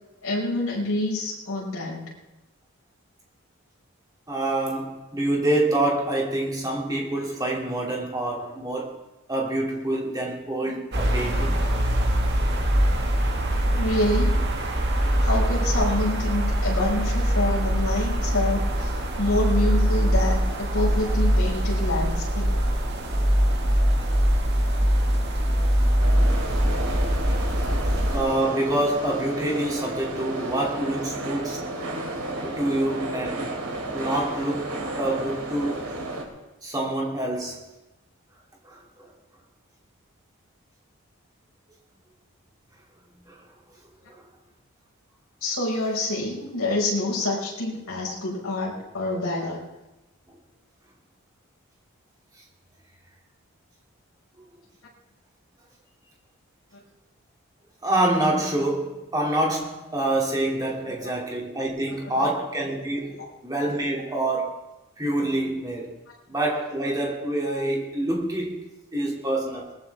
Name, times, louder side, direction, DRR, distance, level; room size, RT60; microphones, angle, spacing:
voice 1, 0.2-2.0 11.2-11.4 13.7-14.4 15.2-18.9 19.2-22.5 45.4-49.6 61.0-61.1 62.1-62.3 63.1-63.3, left 1 dB, 75° left, 5.6 m, -27 dB
voice 2, 4.3-9.0 9.3-11.6 15.0-15.2 28.1-31.7 32.4-33.4 33.9-35.8 36.6-37.6 38.6-39.1 43.3-43.4 44.1-44.2 48.1-48.2 57.8-63.2 63.4-64.6 65.0-65.9 66.3-68.6 68.9-69.7, right 1 dB, 15° right, 2.7 m, -26 dB
sound 1, 10.9-28.2, equal, 50° right, 1.9 m, -23 dB
sound 2, 26.0-36.2, right 2 dB, 85° right, 3.4 m, -32 dB
21.0 x 14.5 x 3.5 m
head